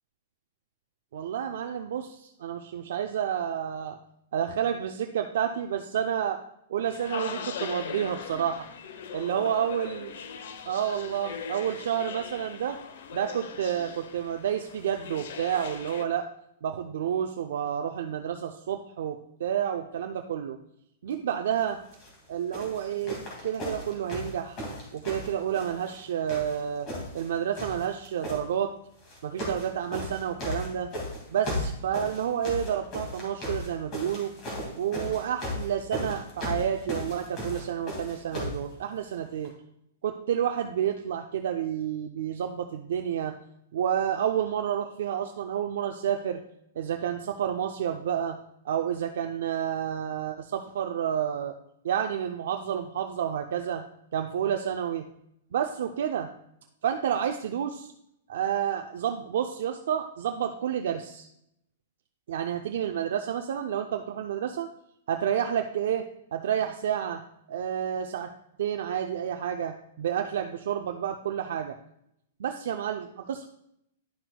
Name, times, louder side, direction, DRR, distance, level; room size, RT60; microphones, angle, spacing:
voice 1, 1.1-4.0 4.3-6.4 6.7-8.7 9.1-10.1 10.7-12.8 13.1-16.3 16.6-20.6 21.0-21.8 22.3-24.6 24.9-26.9 27.1-28.7 29.2-30.9 31.3-34.3 34.8-39.5 40.0-43.3 43.7-46.4 46.8-48.4 48.6-51.5 51.8-53.8 54.1-55.1 55.5-56.3 56.8-57.9 58.3-61.3 62.3-64.7 65.1-66.1 66.3-67.2 67.5-68.3 68.6-71.8 72.4-73.5, right 9 dB, 65° right, 5 dB, 0.4 m, -30 dB
sound 1, 6.8-16.1, left 6 dB, 65° left, 0.7 m, -40 dB
sound 2, 21.9-22.1 22.5-26.0 26.3-27.3 27.5-28.4 29.0-29.7 29.9-38.6 39.4-39.5, left 1 dB, 25° left, 2.1 m, -35 dB
10.5 x 5.9 x 2.2 m, 0.77 s
hypercardioid pair, 170°, 0 cm